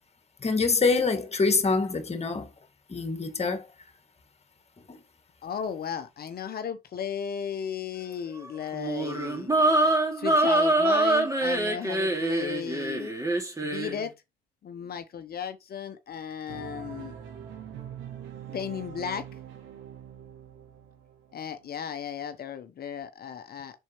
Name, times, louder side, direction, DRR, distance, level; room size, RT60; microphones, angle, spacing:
voice 1, 0.4-2.5 2.9-3.6 4.9-5.0, left 4 dB, 30° left, 1.8 m, -25 dB
voice 2, 5.4-9.7 10.1-13.1 13.6-14.1 14.6-17.2 18.5-19.3 21.3-23.8, left 7 dB, 50° left, 0.9 m, -35 dB
sound 1, 8.7-14.0, right 2 dB, 15° right, 2.5 m, -24 dB
sound 2, 16.5-21.7, right 9 dB, 70° right, 2.0 m, -43 dB
7.3 x 5.6 x 3.1 m
hypercardioid pair, 45°, 20 cm